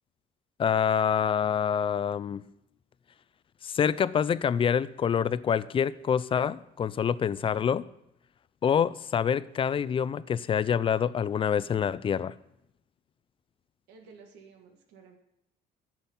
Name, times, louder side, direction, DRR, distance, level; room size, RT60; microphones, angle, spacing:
voice 1, 0.6-2.4 3.6-7.8 8.6-12.3, left 7 dB, 30° left, 0.4 m, -26 dB
voice 2, 13.9-15.2, right 5 dB, 85° right, 1.6 m, -53 dB
10.5 x 7.5 x 5.4 m
cardioid pair, 110°, 17 cm